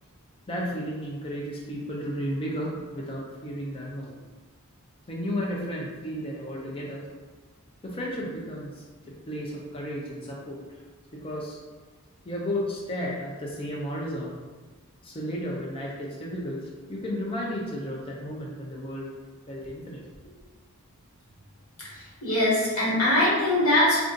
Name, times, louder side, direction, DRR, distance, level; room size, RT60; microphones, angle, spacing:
voice 1, 0.5-4.2 5.1-7.0 7.8-8.8 9.3-10.6 11.1-11.6 12.2-14.3 15.0-19.1 19.5-20.0, equal, 25° left, -4 dB, 0.4 m, -33 dB
voice 2, 21.9-24.0, left 1 dB, 75° left, -7 dB, 1.3 m, -22 dB
2.6 x 2.4 x 3.7 m, 1.3 s
head